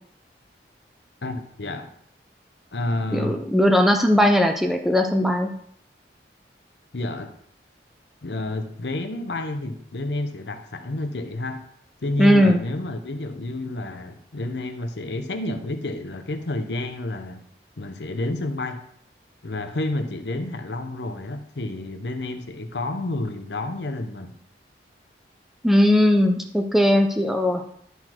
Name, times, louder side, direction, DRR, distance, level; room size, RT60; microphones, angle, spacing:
voice 1, 1.2-1.9 2.7-3.4 6.9-7.3 8.2-11.6 12.0-17.5 17.8-18.8 19.4-24.4, left 2 dB, 80° left, 0.8 m, -30 dB
voice 2, 3.1-5.5 12.2-12.6 25.6-27.6, equal, ahead, 0.6 m, -18 dB
11.0 x 4.1 x 4.5 m
head